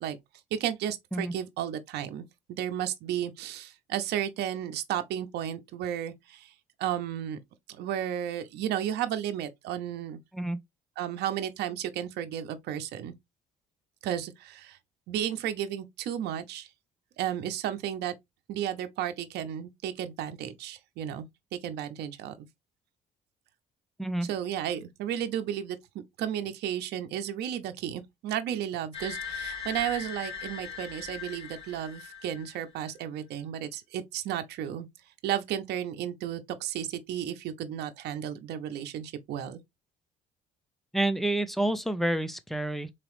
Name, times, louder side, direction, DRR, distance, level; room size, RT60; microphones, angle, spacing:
voice 1, 0.5-2.2 2.5-6.5 6.8-7.4 7.8-10.2 11.0-13.1 14.0-14.8 15.1-16.7 17.2-18.1 18.5-21.3 21.5-22.5 24.3-25.8 26.2-34.9 35.2-39.6, right 10 dB, 75° right, 0.7 m, -33 dB
sound 1, 28.9-32.7, left 6 dB, 35° left, 1.7 m, -39 dB
voice 2, 40.9-42.9, right 1 dB, ahead, 0.5 m, -28 dB
4.1 x 3.0 x 3.0 m
cardioid pair, 110°, 17 cm